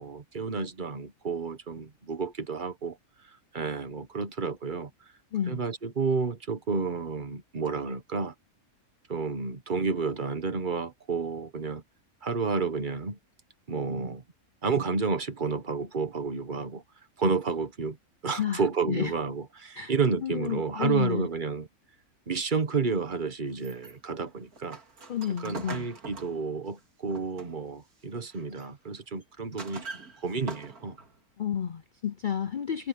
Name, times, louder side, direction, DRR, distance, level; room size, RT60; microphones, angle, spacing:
voice 1, 0.0-3.0 3.5-4.9 5.5-8.3 9.1-11.8 12.2-13.2 13.7-14.2 14.6-16.8 17.2-18.0 18.2-21.7 22.3-24.8 25.3-29.9 30.2-31.0, right 4 dB, 35° right, 1.4 m, -30 dB
voice 2, 5.3-5.6 18.4-18.6 18.9-19.1 19.8-19.9 20.2-21.3 25.1-25.9 31.4-32.9, left 9 dB, 75° left, 0.4 m, -30 dB
sound 1, 23.5-27.8 28.2-28.7 29.2-31.2, right 4 dB, 90° right, 2.9 m, -44 dB
omnidirectional pair, 1.5 m